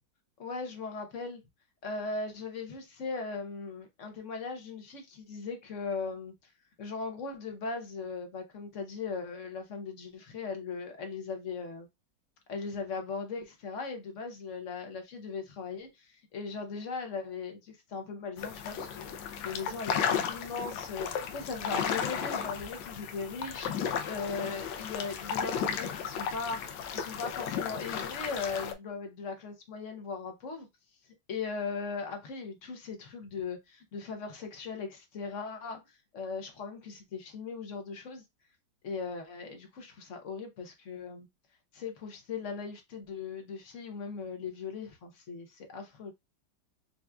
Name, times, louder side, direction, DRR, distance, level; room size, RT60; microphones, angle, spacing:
voice 1, 0.4-1.4 1.8-6.5 6.8-11.9 12.5-30.7 31.3-38.2 38.8-41.3 41.7-46.1, left 4 dB, 55° left, 0.9 m, -39 dB
sound 1, 18.4-28.7, left 7 dB, 80° left, 1.3 m, -34 dB
5.6 x 2.5 x 2.3 m
omnidirectional pair, 2.2 m